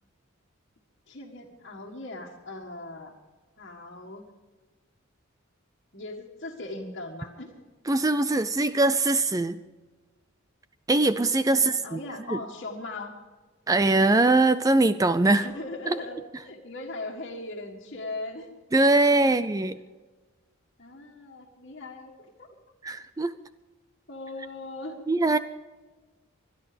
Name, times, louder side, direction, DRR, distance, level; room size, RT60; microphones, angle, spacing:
voice 1, 1.1-3.1 3.6-4.2 5.9-7.5 11.5-13.2 15.3-18.5 19.2-19.4 20.8-22.6 24.1-25.0, left 2 dB, 50° left, -3 dB, 1.8 m, -39 dB
voice 2, 7.9-9.6 10.9-12.0 12.3-12.4 13.7-15.5 15.9-16.0 18.7-19.8 22.8-23.3 25.1-25.4, right 2 dB, 15° right, 13 dB, 0.4 m, -22 dB
25.0 x 11.0 x 5.1 m, 1.3 s
head